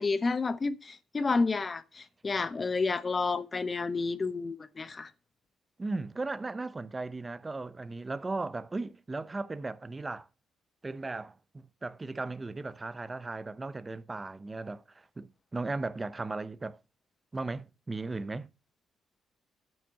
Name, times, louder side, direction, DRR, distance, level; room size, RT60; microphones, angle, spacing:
voice 1, 0.0-5.1, left 4 dB, 30° left, 0.9 m, -30 dB
voice 2, 5.8-10.3 10.8-16.8 17.3-18.5, right 3 dB, 25° right, 0.7 m, -37 dB
9.0 x 6.0 x 5.8 m
cardioid pair, 90°, 0 cm